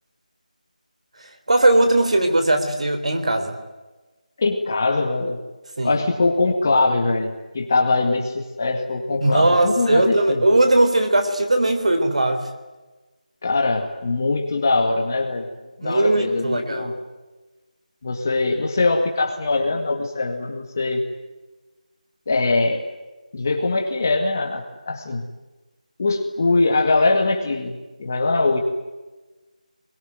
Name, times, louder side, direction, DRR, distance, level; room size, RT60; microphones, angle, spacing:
voice 1, 1.5-3.6 5.8-5.9 9.2-12.5 15.8-17.0, right 2 dB, 50° right, 7 dB, 4.0 m, -19 dB
voice 2, 4.4-5.4 5.8-10.4 13.4-15.5 15.8-16.9 18.0-21.0 22.3-22.8 23.3-25.2 26.0-27.7 28.0-28.6, left 3 dB, 20° left, 2 dB, 2.0 m, -22 dB
25.0 x 22.0 x 9.5 m, 1.2 s
figure-of-eight pair, 180°, 4 cm